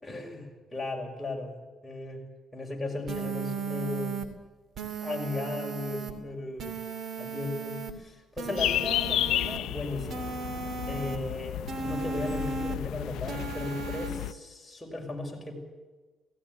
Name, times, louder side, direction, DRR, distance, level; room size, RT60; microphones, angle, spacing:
voice 1, 0.0-1.5 1.8-2.2 2.5-4.2 5.0-6.7 7.2-10.3 10.9-15.5, left 2 dB, 15° left, 0 dB, 6.0 m, -36 dB
sound 1, 3.1-4.3 4.8-6.1 6.6-7.9 8.4-9.6 10.1-11.2 11.7-12.8 13.3-14.1, right 5 dB, 60° right, 2.6 m, -36 dB
sound 2, 8.6-14.3, left 13 dB, 85° left, 0.5 m, -32 dB
17.5 x 16.0 x 9.9 m, 1.3 s
cardioid pair, 90°, 0 cm